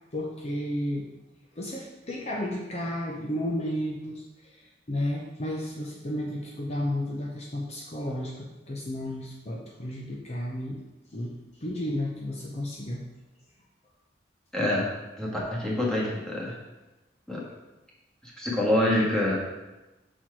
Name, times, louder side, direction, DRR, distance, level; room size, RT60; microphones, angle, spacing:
voice 1, 0.1-1.1 1.5-10.8 11.1-13.1, left 1 dB, 35° left, -2 dB, 0.7 m, -33 dB
voice 2, 14.5-14.9 15.2-16.6 17.3-17.4 18.2-19.4, left 1 dB, 5° left, -5 dB, 1.5 m, -26 dB
6.1 x 4.5 x 4.5 m, 1.1 s
head